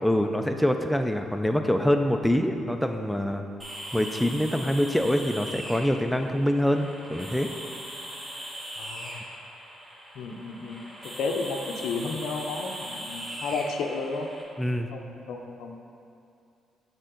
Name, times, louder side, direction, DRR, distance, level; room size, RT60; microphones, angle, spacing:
voice 1, 0.0-3.4 3.9-7.5 14.6-14.9, equal, 5° left, 5 dB, 0.3 m, -25 dB
sound 1, 3.6-14.4, equal, 20° right, 1.3 m, -40 dB
voice 2, 8.8-9.2 10.1-10.8 11.2-14.3 14.9-15.8, left 4 dB, 80° left, 3 dB, 0.5 m, -32 dB
6.6 x 4.4 x 3.8 m, 2.6 s
cardioid pair, 90°, 0 cm